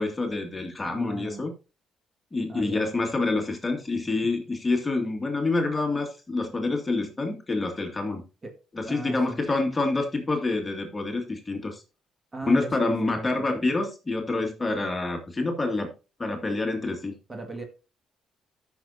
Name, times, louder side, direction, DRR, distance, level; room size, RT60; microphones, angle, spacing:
voice 1, 0.0-1.5 2.3-8.2 8.8-11.8 12.5-15.9 16.2-17.2, left 3 dB, 25° left, 3 dB, 2.2 m, -27 dB
voice 2, 0.8-1.5 2.5-2.8 8.4-8.5 8.9-9.4 12.3-13.5 17.3-17.6, right 3 dB, 25° right, 4 dB, 1.9 m, -38 dB
14.0 x 6.1 x 2.7 m, 0.31 s
cardioid pair, 90°, 0 cm